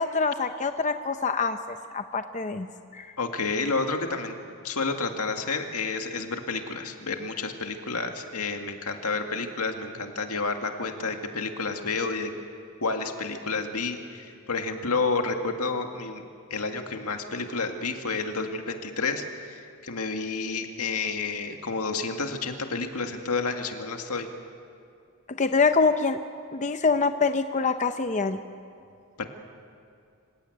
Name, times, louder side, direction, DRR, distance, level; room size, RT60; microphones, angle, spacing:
voice 1, 0.0-1.6 1.9-2.7 2.9-3.1 25.4-26.2 26.5-28.4, left 4 dB, 35° left, 8 dB, 0.7 m, -25 dB
voice 2, 3.2-4.3 4.6-12.3 12.8-16.2 16.5-24.3 29.2-29.3, left 4 dB, 85° left, 5 dB, 2.0 m, -30 dB
26.5 x 16.5 x 9.1 m, 2.4 s
head